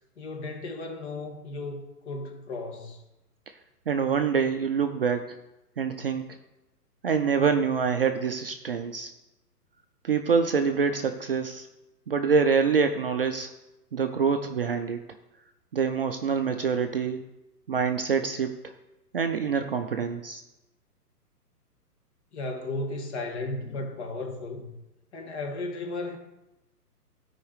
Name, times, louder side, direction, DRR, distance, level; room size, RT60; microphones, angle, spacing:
voice 1, 0.2-3.0 22.3-24.7 25.1-26.2, left 2 dB, 45° left, 3 dB, 1.9 m, -35 dB
voice 2, 3.9-5.4 5.8-6.3 7.0-9.1 10.0-11.7 12.1-13.5 13.9-15.0 15.7-17.2 17.7-18.5 19.1-20.4, right 6 dB, 40° right, 6 dB, 0.4 m, -25 dB
13.0 x 4.9 x 4.7 m, 0.96 s
hypercardioid pair, 135°, 48 cm